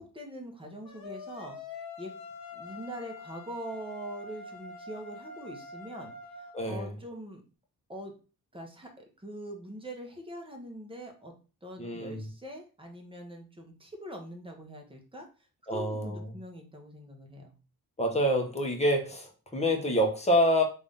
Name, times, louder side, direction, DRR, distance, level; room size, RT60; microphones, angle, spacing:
voice 1, 0.0-1.6 2.0-2.1 2.5-7.4 7.9-8.1 8.5-11.3 11.6-15.2 15.6-17.5, equal, 15° right, 2 dB, 1.0 m, -43 dB
sound 1, 0.8-6.6, left 3 dB, 65° left, 1.1 m, -45 dB
voice 2, 6.5-6.9 11.8-12.3 15.7-16.3 18.0-20.6, equal, 15° left, 1 dB, 1.0 m, -27 dB
3.5 x 2.7 x 3.5 m, 0.35 s
cardioid pair, 90°, 37 cm